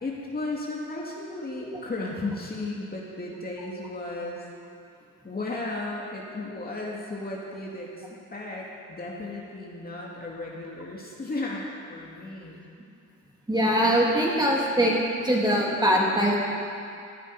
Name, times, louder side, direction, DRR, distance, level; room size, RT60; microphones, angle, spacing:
voice 1, 0.0-4.5 5.2-12.6, left 2 dB, 30° left, -3 dB, 2.3 m, -35 dB
voice 2, 13.5-14.9 15.2-16.4, equal, 15° right, -4 dB, 3.3 m, -22 dB
17.5 x 12.0 x 4.8 m, 2.5 s
cardioid pair, 90°, 30 cm